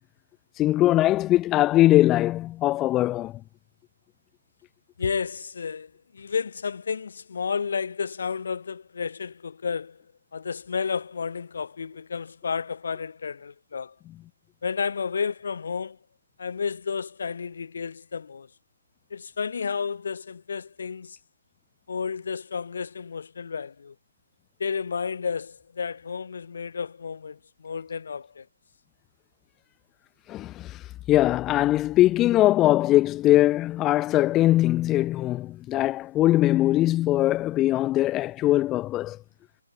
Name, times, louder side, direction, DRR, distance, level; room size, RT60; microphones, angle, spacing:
voice 1, 0.6-3.4 30.3-30.7 31.1-39.2, left 15 dB, 10° left, 0.3 m, -21 dB
voice 2, 5.0-10.0 10.3-13.9 14.6-16.0 16.4-18.5 19.1-21.2 21.9-23.9 24.6-28.5, left 6 dB, 45° left, 3.9 m, -31 dB
hypercardioid pair, 175°, 0 cm